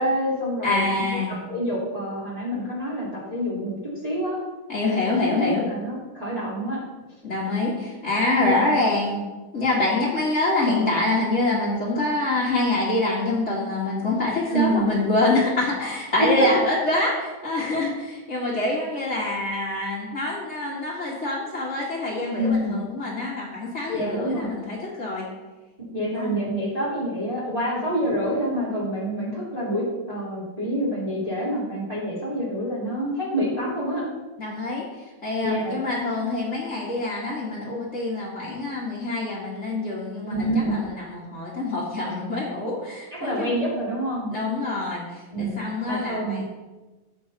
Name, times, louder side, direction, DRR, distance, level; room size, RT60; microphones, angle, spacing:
voice 1, 0.0-1.0 1.3-3.7 4.0-4.4 4.8-6.8 8.4-8.7 14.5-14.9 16.2-16.6 22.4-22.8 23.9-24.5 25.9-34.0 35.4-35.8 40.3-40.9 43.1-44.3 45.3-46.4, equal, 15° right, -8 dB, 3.2 m, -27 dB
voice 2, 0.6-1.3 4.7-5.6 7.2-9.2 9.5-25.3 26.1-26.3 34.4-34.8 35.2-43.6 44.3-46.4, left 2 dB, 35° left, -6 dB, 2.2 m, -25 dB
14.5 x 7.9 x 4.2 m, 1.2 s
omnidirectional pair, 2.2 m